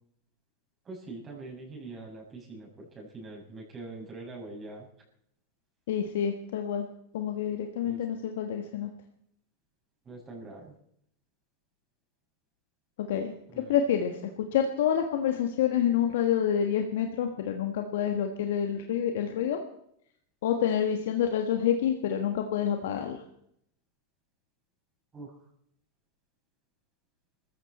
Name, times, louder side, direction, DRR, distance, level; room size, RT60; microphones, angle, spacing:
voice 1, 0.8-4.9 7.8-8.0 10.0-10.7 13.5-13.8 25.1-25.3, right 3 dB, 25° right, -1 dB, 6.6 m, -43 dB
voice 2, 5.9-6.9 7.1-8.9 13.0-19.6 20.4-23.2, left 9 dB, 70° left, 5 dB, 1.5 m, -28 dB
22.5 x 14.5 x 4.3 m, 0.72 s
hypercardioid pair, 100°, 0 cm